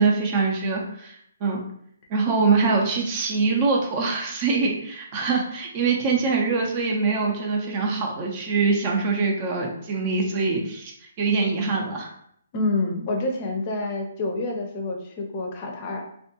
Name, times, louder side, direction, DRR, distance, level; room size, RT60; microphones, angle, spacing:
voice 1, 0.0-1.6 2.1-12.1, right 4 dB, 35° right, 0 dB, 0.5 m, -24 dB
voice 2, 12.5-16.0, left 2 dB, 35° left, 2 dB, 0.5 m, -27 dB
2.4 x 2.2 x 2.8 m, 0.68 s
hypercardioid pair, 140°, 0 cm